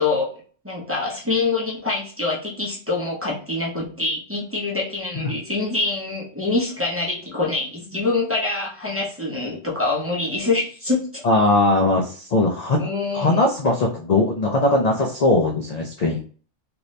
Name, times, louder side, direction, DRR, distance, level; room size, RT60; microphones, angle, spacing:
voice 1, 0.0-11.2 12.8-13.4, left 3 dB, 15° right, -5 dB, 0.6 m, -25 dB
voice 2, 11.2-12.9 13.1-16.2, left 2 dB, 60° left, 0 dB, 0.4 m, -20 dB
2.8 x 2.6 x 3.1 m, 0.41 s
omnidirectional pair, 1.3 m